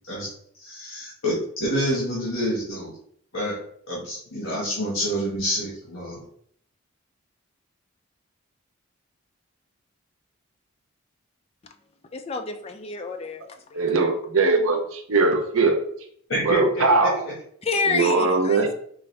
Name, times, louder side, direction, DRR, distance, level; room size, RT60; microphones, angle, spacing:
voice 1, 0.6-2.9 3.3-3.6 3.9-6.2 16.3-17.1, equal, 80° left, -6 dB, 1.4 m, -27 dB
voice 2, 12.1-13.9 17.6-18.7, left 4 dB, 30° left, 5 dB, 0.4 m, -29 dB
voice 3, 13.7-15.8 16.5-17.2 17.9-18.7, right 3 dB, 80° right, 5 dB, 0.7 m, -21 dB
4.7 x 2.6 x 3.3 m, 0.63 s
head